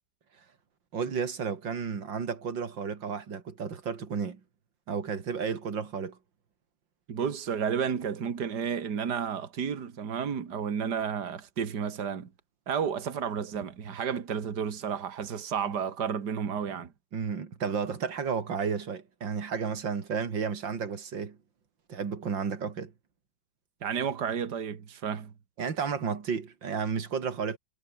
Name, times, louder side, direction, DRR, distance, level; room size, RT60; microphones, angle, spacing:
voice 1, 0.9-4.4 4.9-6.2 17.1-21.4 21.9-22.9 25.6-27.6, right 6 dB, 75° right, 3.2 m, -32 dB
voice 2, 7.1-12.3 12.7-16.9 23.8-25.3, right 7 dB, 60° right, 2.5 m, -32 dB
omnidirectional pair, 2.0 m